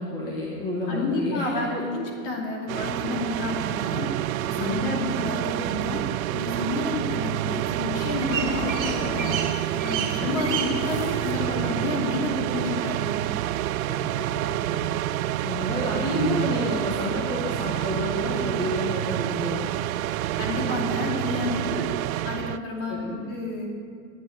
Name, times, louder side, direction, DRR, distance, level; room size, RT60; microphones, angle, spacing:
voice 1, 0.0-1.6 4.5-5.0 10.2-10.5 10.8-10.9 13.9-14.9 15.4-19.6 21.7-21.8 22.9-23.2, left 1 dB, 10° left, -4 dB, 1.1 m, -30 dB
voice 2, 0.9-4.1 4.5-6.0 6.3-9.4 9.7-13.3 20.4-21.7 22.2-23.7, left 3 dB, 45° left, -1 dB, 2.8 m, -30 dB
sound 1, 2.7-22.6, right 14 dB, 90° right, 0.5 m, -28 dB
sound 2, 7.8-14.0, right 7 dB, 65° right, 2.7 m, -35 dB
sound 3, 8.3-12.4, left 2 dB, 85° left, 3.0 m, -39 dB
10.5 x 9.0 x 9.2 m, 2.3 s
supercardioid pair, 175°, 40 cm